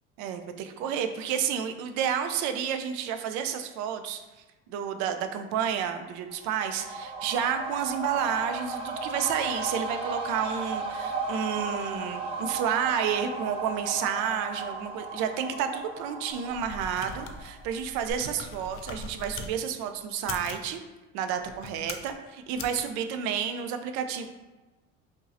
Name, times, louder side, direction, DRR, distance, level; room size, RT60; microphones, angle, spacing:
voice 1, 0.2-4.2 4.7-20.8 21.1-24.3, right 8 dB, 75° right, 7 dB, 0.5 m, -30 dB
sound 1, 6.3-17.8 18.1-18.2, right 3 dB, 20° right, 0.5 m, -35 dB
sound 2, 16.3-19.5 20.1-20.7 21.4-22.1 22.5-22.8, left 4 dB, 45° left, 0.4 m, -41 dB
5.1 x 2.0 x 2.6 m, 1.2 s
cardioid pair, 130°, 29 cm